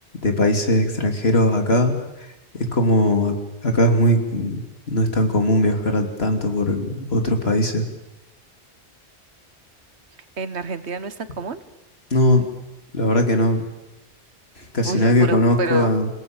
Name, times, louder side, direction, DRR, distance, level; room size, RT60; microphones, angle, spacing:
voice 1, 0.2-1.9 2.7-3.3 3.6-7.8 12.1-12.4 12.9-13.6 14.6-16.1, left 1 dB, 65° left, 4 dB, 3.2 m, -19 dB
voice 2, 10.4-11.6 14.8-16.0, right 5 dB, 75° right, 12 dB, 1.6 m, -28 dB
28.5 x 17.5 x 8.9 m, 0.99 s
omnidirectional pair, 1.1 m